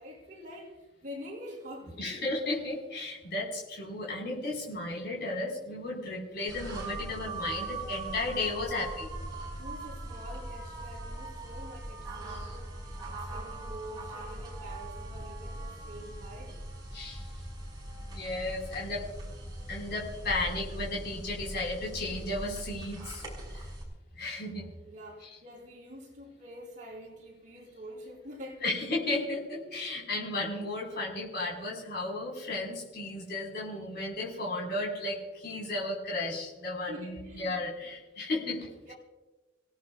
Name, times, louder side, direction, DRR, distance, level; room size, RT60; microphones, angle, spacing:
voice 1, 0.0-2.3 9.6-16.6 24.9-28.8 36.9-37.6 38.8-38.9, equal, 45° right, -4 dB, 7.0 m, -46 dB
voice 2, 2.0-9.1 12.3-12.6 16.9-17.3 18.1-19.0 19.7-23.2 24.2-24.7 28.6-38.9, left 2 dB, 60° left, -3 dB, 4.8 m, -34 dB
sound 1, 6.5-23.8, right 2 dB, 25° right, 5.8 m, -40 dB
29.0 x 17.0 x 2.4 m, 1.2 s
head